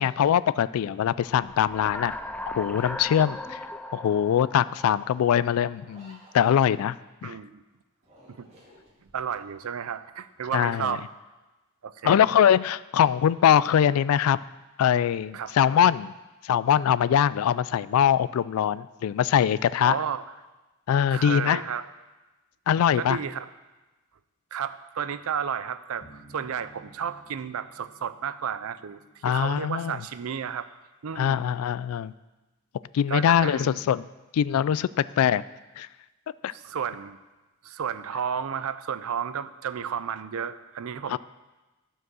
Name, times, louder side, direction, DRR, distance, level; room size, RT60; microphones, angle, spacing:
voice 1, 0.0-2.1 2.5-3.6 3.9-7.0 7.2-7.4 10.5-11.0 12.0-14.4 14.8-16.1 16.4-20.0 20.9-21.6 22.7-23.2 29.2-30.0 31.2-32.1 32.9-34.1 34.3-35.4 35.8-35.9 36.4-36.5 41.1-41.2, left 9 dB, 80° left, 17 dB, 0.3 m, -22 dB
sound 1, 1.2-5.8, left 1 dB, 5° left, 0.4 m, -38 dB
sound 2, 5.8-7.1 8.0-9.5 9.9-10.5, equal, 30° right, 2.2 m, -55 dB
voice 2, 7.2-7.6 8.3-8.5 9.1-11.0 11.8-12.3 15.3-15.5 19.8-20.2 21.1-21.9 23.0-23.5 24.5-30.7 31.0-31.4 33.1-33.8 36.5-37.2 37.6-41.2, right 7 dB, 85° right, 13 dB, 0.5 m, -32 dB
sound 3, 26.0-29.1, equal, 45° left, 1.6 m, -53 dB
12.5 x 4.7 x 6.2 m, 1.1 s
head